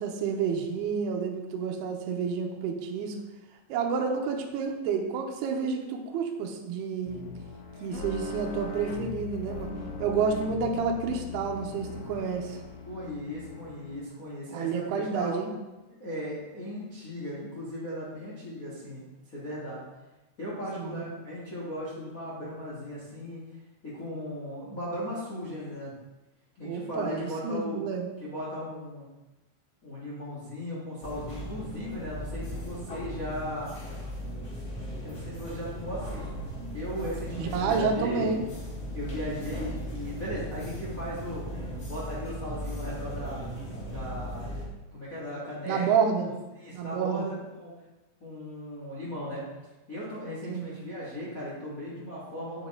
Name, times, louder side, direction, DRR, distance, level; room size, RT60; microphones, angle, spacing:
voice 1, 0.0-3.2 3.7-7.2 7.8-9.7 10.0-12.6 14.5-15.5 20.8-21.0 26.6-28.1 37.4-38.4 45.6-46.3 46.7-47.3 50.5-50.7, right 5 dB, 80° right, 1 dB, 2.4 m, -29 dB
sound 1, 7.1-14.1, left 5 dB, 90° left, 2.1 m, -40 dB
voice 2, 12.8-15.3 16.0-19.0 19.3-19.8 20.4-23.4 23.8-25.9 26.5-27.8 28.2-29.1 29.8-33.7 35.0-36.3 36.7-38.3 38.9-41.4 41.9-43.4 43.8-44.4 44.9-45.9 46.1-46.3 46.5-47.7 48.2-49.4 49.9-52.7, equal, 70° left, -8 dB, 0.8 m, -37 dB
sound 2, 31.0-44.7, equal, 40° left, 1.8 m, -37 dB
9.4 x 7.0 x 3.8 m, 1.1 s
omnidirectional pair, 5.8 m